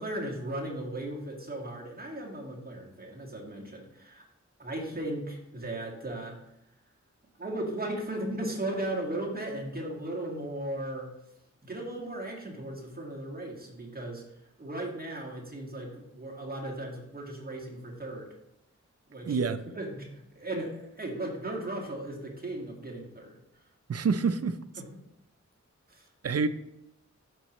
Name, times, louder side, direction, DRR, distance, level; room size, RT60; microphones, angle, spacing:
voice 1, 0.0-4.2 4.6-6.4 7.4-11.1 11.6-14.2 14.6-18.3 19.1-19.5 19.7-23.4 24.8-24.9 25.9-26.1, right 1 dB, 30° right, -2 dB, 1.9 m, -36 dB
voice 2, 19.2-19.6 23.9-24.6 26.2-26.5, right 5 dB, 55° right, 11 dB, 0.5 m, -27 dB
12.5 x 4.8 x 3.1 m, 0.84 s
wide cardioid pair, 100°, 29 cm